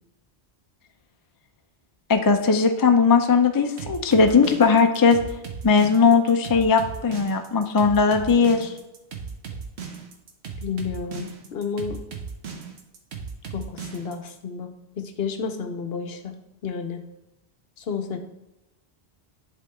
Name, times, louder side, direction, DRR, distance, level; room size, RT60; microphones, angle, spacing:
voice 1, 2.1-5.2 5.6-8.7, left 5 dB, 30° left, 6 dB, 0.4 m, -18 dB
sound 1, 3.8-14.3, right 6 dB, 75° right, 1.1 m, -36 dB
voice 2, 10.6-12.0 13.5-16.4 16.6-17.0 17.8-18.2, left 6 dB, 65° left, 7 dB, 0.9 m, -31 dB
10.5 x 3.5 x 3.5 m, 0.97 s
omnidirectional pair, 1.1 m